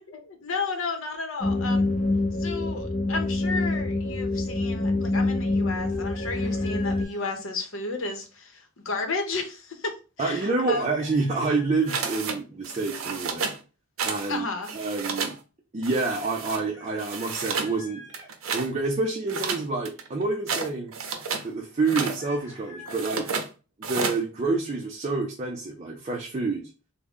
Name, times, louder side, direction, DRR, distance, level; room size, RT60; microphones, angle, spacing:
voice 1, 0.1-1.9 2.4-10.9 14.3-14.7, left 3 dB, 75° left, 0.8 m, -33 dB
sound 1, 1.4-7.0, left 2 dB, 35° left, 0.7 m, -26 dB
Chicken rooster, 5.8-7.3 10.6-12.2 16.7-18.3 21.8-23.3, left 2 dB, 5° right, 2.0 m, -47 dB
voice 2, 10.2-13.5 14.0-14.5 14.7-15.3 15.7-18.0 18.5-20.9 21.4-23.3 23.9-26.7, right 3 dB, 35° right, 0.4 m, -28 dB
sound 2, 11.9-12.4 12.6-13.6 14.0-14.3 14.6-15.4 15.8-16.6 17.0-17.7 18.1-18.7 19.3-21.5 21.8-22.2 22.9-23.5 23.8-24.2, right 5 dB, 90° right, 0.6 m, -31 dB
3.5 x 2.1 x 3.5 m
head